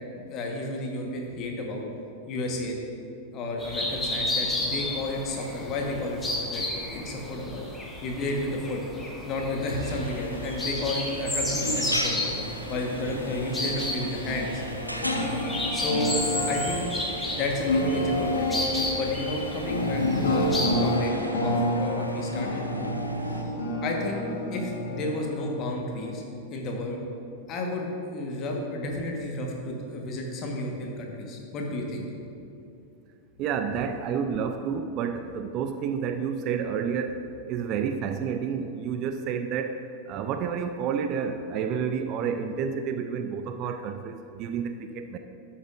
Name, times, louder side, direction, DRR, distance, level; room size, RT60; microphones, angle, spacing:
voice 1, 0.3-1.9 2.3-2.8 3.3-7.6 8.0-8.8 9.2-12.3 12.7-14.6 15.7-16.2 16.5-16.9 17.4-18.5 18.9-21.1 21.4-22.7 23.8-24.2 24.5-26.2 26.5-27.0 27.5-32.1, left 2 dB, 35° left, 1 dB, 1.4 m, -32 dB
sound 1, 3.6-21.0, left 1 dB, 10° left, 1.5 m, -33 dB
sound 2, 9.6-23.4, equal, 90° left, 0.5 m, -39 dB
sound 3, 11.4-26.1, left 1 dB, 65° left, 1.1 m, -30 dB
voice 2, 33.4-37.2 37.5-45.2, right 7 dB, 40° right, 8 dB, 0.4 m, -30 dB
12.5 x 7.2 x 2.6 m, 2.6 s
figure-of-eight pair, 90°, 0 cm